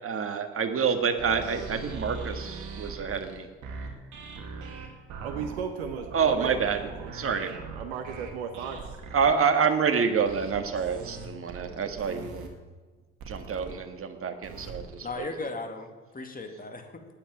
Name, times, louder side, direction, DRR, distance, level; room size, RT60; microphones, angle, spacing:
voice 1, 0.0-3.5 6.1-6.8 7.1-7.5 9.1-12.5 13.3-15.3, right 6 dB, 45° right, 7 dB, 1.7 m, -27 dB
sound 1, 1.2-9.3 10.3-12.5 13.2-13.7 14.4-15.2, right 4 dB, 70° right, 2.2 m, -41 dB
voice 2, 5.2-9.0, right 7 dB, 85° right, 5 dB, 1.0 m, -36 dB
voice 3, 15.0-17.1, left 3 dB, 25° left, 5 dB, 2.3 m, -37 dB
9.1 x 8.8 x 9.2 m, 1.3 s
hypercardioid pair, 55°, 31 cm